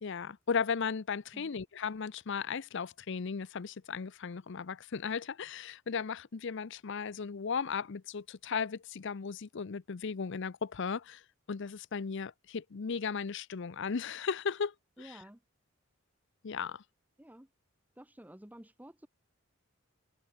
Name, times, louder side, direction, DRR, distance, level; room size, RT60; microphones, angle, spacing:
voice 1, 0.0-11.2 11.5-14.7 15.0-15.2 16.4-16.8, left 6 dB, 60° left, 0.6 m, -36 dB
voice 2, 15.0-15.4 17.2-17.5 18.0-19.1, right 1 dB, 10° right, 1.1 m, -51 dB
head